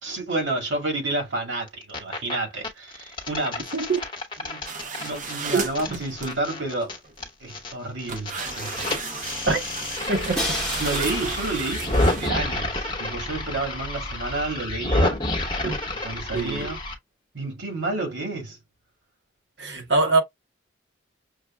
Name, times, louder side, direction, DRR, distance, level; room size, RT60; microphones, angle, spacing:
voice 1, 0.0-3.6 4.4-4.7 5.0-7.0 7.4-8.9 10.8-15.2 16.0-16.8 17.3-18.6, right 2 dB, 85° right, 2.0 m, -30 dB
sound 1, 1.7-2.3 2.6-7.7 8.0-16.9, left 1 dB, 25° left, 1.1 m, -29 dB
sound 2, 4.7-6.4 7.0-7.5 8.1-12.3, right 5 dB, 40° right, 0.7 m, -34 dB
voice 2, 5.5-6.0 9.5-9.6 10.1-10.6 15.6-15.8 16.3-16.7 19.6-20.2, right 3 dB, 65° right, 1.1 m, -24 dB
Crash cymbal, 10.4-12.4, left 2 dB, ahead, 1.1 m, -32 dB
6.2 x 2.3 x 2.2 m
head